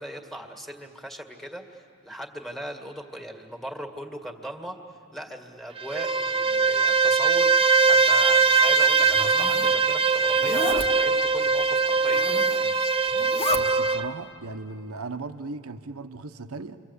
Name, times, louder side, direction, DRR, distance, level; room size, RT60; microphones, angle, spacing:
voice 1, 0.0-4.8 5.1-12.3, equal, ahead, 3 dB, 2.0 m, -39 dB
Bowed string instrument, 5.8-14.1, right 4 dB, 25° right, 0.8 m, -21 dB
Zipper (clothing), 9.0-9.7 10.3-10.9 12.0-12.7 13.1-13.6, left 1 dB, 25° left, 1.5 m, -32 dB
voice 2, 13.5-16.8, right 3 dB, 70° right, 8 dB, 1.0 m, -37 dB
29.0 x 24.0 x 8.3 m, 2.3 s
head